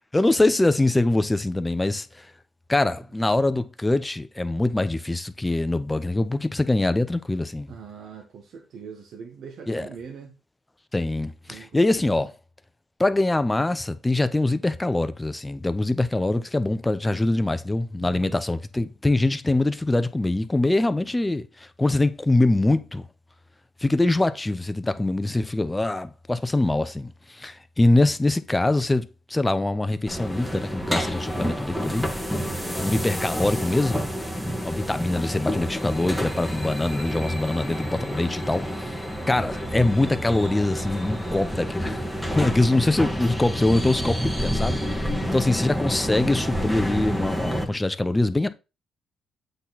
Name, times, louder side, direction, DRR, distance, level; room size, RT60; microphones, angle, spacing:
voice 1, 0.1-2.3 2.7-7.7 9.7-9.9 10.9-12.3 13.0-23.0 23.8-32.1 32.8-34.1 34.6-38.9 39.3-42.0 42.3-45.0 45.3-48.5, left 2 dB, 15° left, 0.8 m, -23 dB
voice 2, 7.7-10.4 11.5-12.3 18.0-18.3 32.4-32.7 45.1-45.6, right 6 dB, 70° right, 1.3 m, -42 dB
sound 1, 30.1-47.6, equal, 5° right, 1.8 m, -29 dB
8.1 x 4.1 x 4.1 m
cardioid pair, 90°, 0 cm